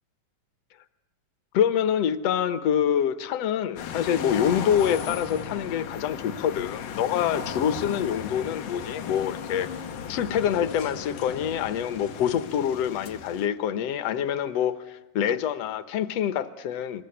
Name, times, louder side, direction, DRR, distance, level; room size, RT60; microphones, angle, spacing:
voice 1, 1.5-9.7 10.1-17.0, left 9 dB, 65° left, 1.9 m, -26 dB
sound 1, 3.8-13.5, left 7 dB, 85° left, 3.0 m, -36 dB
26.5 x 22.0 x 9.8 m
omnidirectional pair, 3.7 m